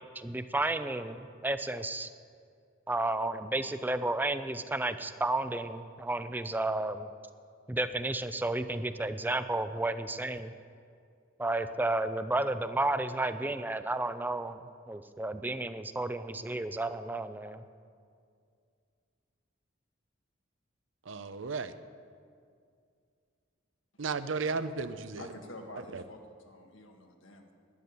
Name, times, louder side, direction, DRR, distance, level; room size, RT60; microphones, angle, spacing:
voice 1, 0.2-2.1 2.9-7.1 7.7-10.5 11.4-14.6 14.9-17.6, right 2 dB, 10° right, 11 dB, 0.4 m, -32 dB
voice 2, 21.1-21.7 24.0-25.3 25.9-26.0, right 4 dB, 75° right, 12 dB, 0.7 m, -34 dB
voice 3, 25.2-27.5, left 1 dB, 80° left, 3 dB, 1.7 m, -48 dB
12.0 x 8.7 x 9.4 m, 2.3 s
head